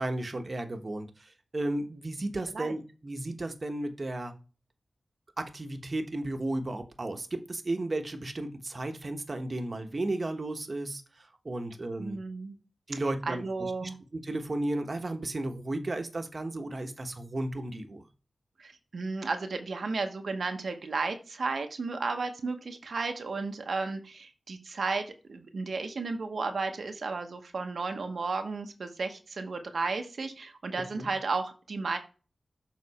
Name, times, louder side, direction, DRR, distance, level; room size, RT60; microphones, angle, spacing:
voice 1, 0.0-4.3 5.4-12.2 12.9-13.4 13.8-18.0 31.0-31.1, right 2 dB, 50° right, 6 dB, 1.1 m, -34 dB
voice 2, 12.0-12.6 13.3-14.0 18.6-32.0, right 4 dB, 75° right, 6 dB, 0.9 m, -33 dB
6.8 x 4.0 x 4.1 m, 0.35 s
cardioid pair, 45°, 0 cm